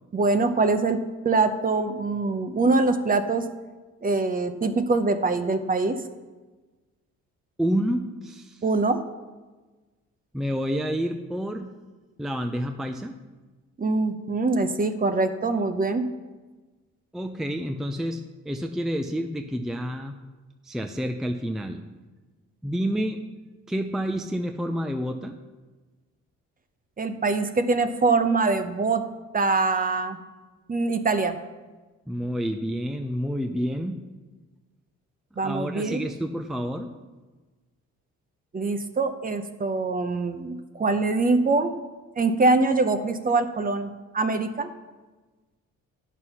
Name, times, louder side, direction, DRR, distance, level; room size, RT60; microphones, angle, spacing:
voice 1, 0.1-1.0 1.2-3.4 4.0-6.0 8.6-9.0 13.8-16.1 27.0-29.0 29.3-30.2 30.7-31.4 35.4-36.0 38.5-41.8 42.2-44.7, right 3 dB, 30° right, 9 dB, 0.8 m, -23 dB
voice 2, 7.6-8.6 10.3-11.7 12.2-13.1 17.1-18.2 18.5-20.2 20.7-21.8 22.6-23.2 23.7-25.3 32.1-34.0 35.4-36.9, equal, ahead, 6 dB, 0.5 m, -29 dB
9.6 x 6.2 x 5.6 m, 1.3 s
cardioid pair, 90°, 30 cm